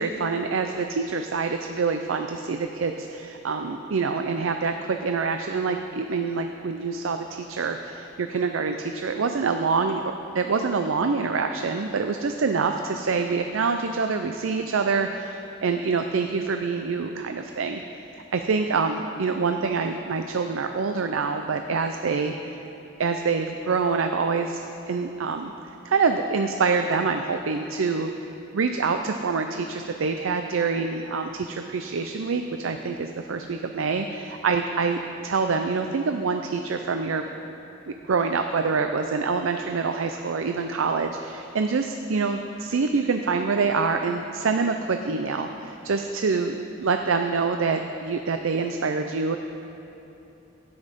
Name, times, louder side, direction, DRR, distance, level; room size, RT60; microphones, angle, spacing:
voice 1, 0.0-17.8 18.3-22.3 23.0-25.5 25.8-28.3 28.5-37.3 37.9-49.4, right 4 dB, 80° right, 6 dB, 0.5 m, -26 dB
13.0 x 9.5 x 5.2 m, 2.9 s
head